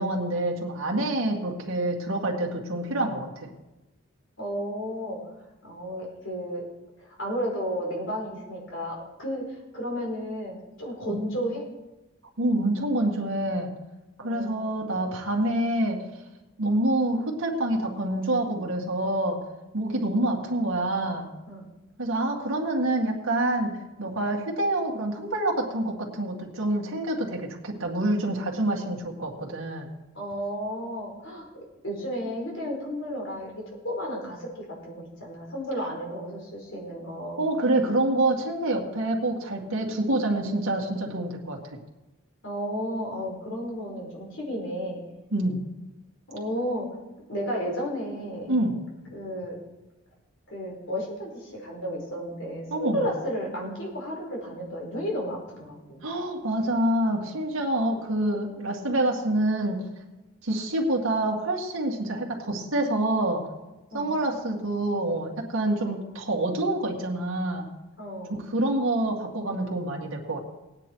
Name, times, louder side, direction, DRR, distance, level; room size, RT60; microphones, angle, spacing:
voice 1, 0.0-3.3 11.1-11.2 12.4-13.7 14.2-16.0 16.6-19.4 19.7-21.3 22.0-29.9 37.4-41.6 45.3-45.6 48.5-48.8 52.7-53.0 56.0-59.8 60.4-63.5 63.9-67.7 68.3-70.4, right 1 dB, 75° right, -1 dB, 2.0 m, -27 dB
voice 2, 4.4-5.2 5.6-6.6 7.0-11.6 14.2-14.7 20.1-20.2 21.5-21.6 30.1-37.4 42.4-45.0 46.3-46.8 47.3-48.5 49.1-49.5 50.5-56.1 63.9-64.1 68.0-68.4, equal, 65° left, -1 dB, 4.6 m, -33 dB
18.0 x 9.7 x 4.6 m, 1.0 s
head